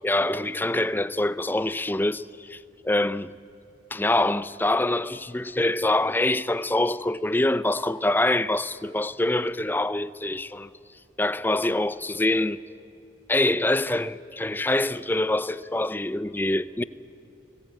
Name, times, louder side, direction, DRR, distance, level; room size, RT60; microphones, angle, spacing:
voice 1, 0.0-3.3 3.9-10.7 11.2-12.6 13.3-16.8, left 1 dB, 10° left, 0.5 m, -25 dB
30.0 x 20.0 x 9.2 m
head